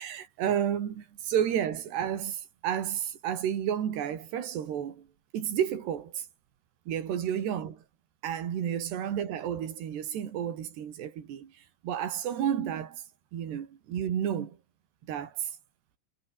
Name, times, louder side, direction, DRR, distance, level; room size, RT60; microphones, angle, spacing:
voice 1, 0.0-5.1 5.3-6.3 6.9-7.8 8.2-13.0 13.3-14.6 15.1-15.5, right 9 dB, 75° right, 5.0 m, -31 dB
omnidirectional pair, 4.8 m